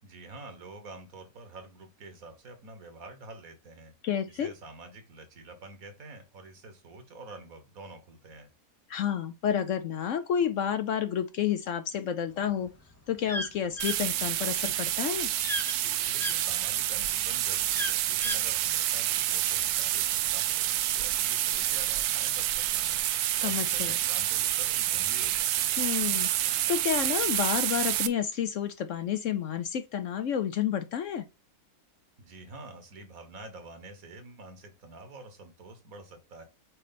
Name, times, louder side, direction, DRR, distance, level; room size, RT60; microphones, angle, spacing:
voice 1, 0.0-3.9 4.3-8.5 16.1-23.0 23.4-25.8 32.2-36.5, right 2 dB, 65° right, 1.7 m, -47 dB
voice 2, 4.0-4.5 8.9-12.7 13.1-15.3 23.4-23.9 25.8-31.3, left 9 dB, 65° left, 0.9 m, -30 dB
sound 1, 12.5-16.4 16.9-18.5, equal, 20° left, 0.4 m, -35 dB
sound 2, 13.8-28.1, right 13 dB, 80° right, 1.1 m, -28 dB
7.6 x 3.2 x 4.0 m
omnidirectional pair, 1.6 m